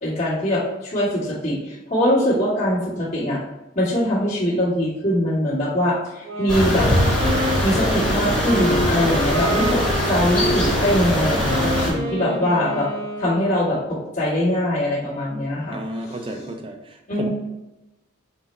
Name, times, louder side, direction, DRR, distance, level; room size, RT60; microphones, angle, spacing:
voice 1, 0.0-3.4 3.7-6.9 7.6-9.8 10.0-12.9 13.2-15.8 16.0-16.2 17.1-17.3, equal, 35° left, -9 dB, 1.3 m, -22 dB
Wind instrument woodwind instrument, 6.2-14.0, left 1 dB, 65° right, 1.2 m, -28 dB
sound 1, 6.5-11.9, equal, 5° left, 1.1 m, -22 dB
voice 2, 15.7-17.3, right 1 dB, 25° right, 4 dB, 0.4 m, -32 dB
3.9 x 2.0 x 4.1 m, 0.98 s
head